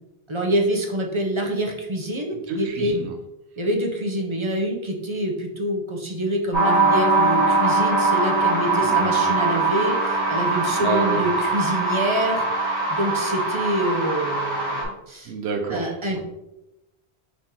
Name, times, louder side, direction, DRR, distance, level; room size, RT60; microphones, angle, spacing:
voice 1, 0.3-3.0 3.6-12.4 12.9-15.3 15.7-16.2, right 1 dB, 35° right, 0 dB, 0.6 m, -26 dB
voice 2, 2.5-3.1 8.8-9.3 10.8-11.2 15.3-16.2, right 3 dB, 80° right, 4 dB, 0.9 m, -29 dB
sound 1, 6.5-14.8, right 3 dB, 90° left, 2.0 m, -22 dB
4.9 x 2.9 x 3.7 m, 0.95 s
omnidirectional pair, 1.1 m